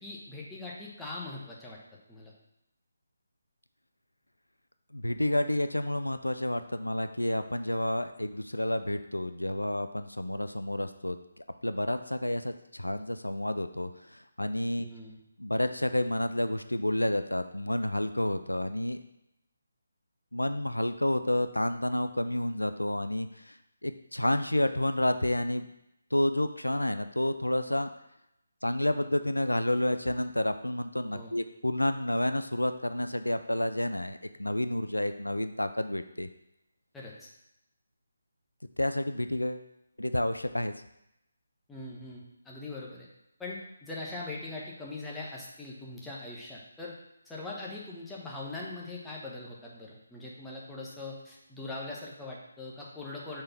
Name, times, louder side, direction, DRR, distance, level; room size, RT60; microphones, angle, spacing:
voice 1, 0.0-1.8 2.1-2.3 14.8-15.2 31.1-31.4 36.9-37.3 41.7-43.1 43.4-46.9 47.2-53.4, left 2 dB, 5° left, -5 dB, 1.2 m, -41 dB
voice 2, 4.9-11.2 11.6-14.9 15.4-19.0 20.3-23.5 23.8-25.7 26.1-27.9 28.6-36.3 38.8-39.7 40.0-40.7, left 1 dB, 85° left, 9 dB, 0.4 m, -30 dB
5.2 x 4.4 x 5.8 m, 0.83 s
figure-of-eight pair, 150°, 0 cm